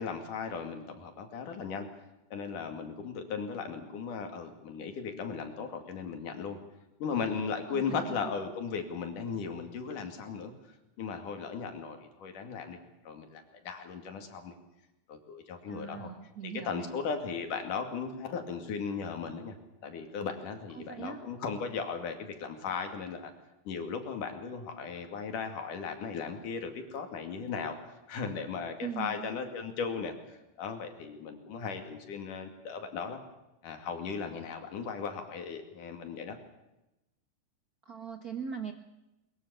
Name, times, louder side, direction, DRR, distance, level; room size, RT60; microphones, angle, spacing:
voice 1, 0.0-1.9 2.3-6.6 7.0-10.5 11.0-12.8 13.1-14.5 15.1-16.1 16.7-19.6 19.8-23.3 23.7-27.8 28.1-33.2 33.6-36.4, left 5 dB, 75° left, 6 dB, 3.9 m, -37 dB
voice 2, 7.7-8.3 15.7-16.9 20.7-21.2 28.8-29.3 37.8-38.7, right 7 dB, 55° right, 7 dB, 1.0 m, -40 dB
22.0 x 21.5 x 7.0 m, 0.95 s
omnidirectional pair, 3.8 m